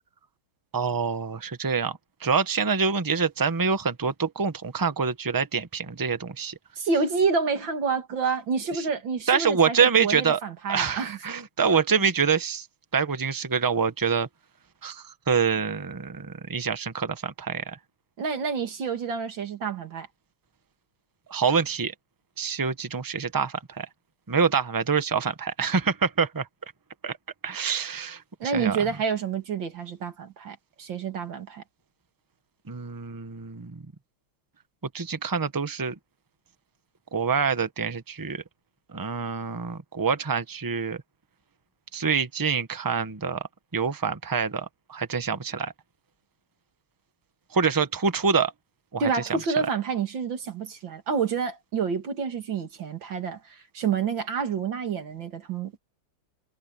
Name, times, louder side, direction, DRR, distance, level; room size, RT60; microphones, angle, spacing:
voice 1, 0.7-6.5 9.3-10.4 10.7-12.7 12.9-14.3 14.8-17.8 21.3-21.9 22.4-23.9 24.3-26.5 27.0-27.2 27.4-28.8 32.7-33.8 34.9-35.9 37.1-38.4 38.9-41.0 41.9-45.7 47.5-48.5 48.9-49.0, right 6 dB, 20° right, 0.6 m, -26 dB
voice 2, 6.8-11.2 18.2-20.1 28.4-31.6 49.0-55.8, right 5 dB, 75° right, 2.8 m, -28 dB
omnidirectional pair, 2.1 m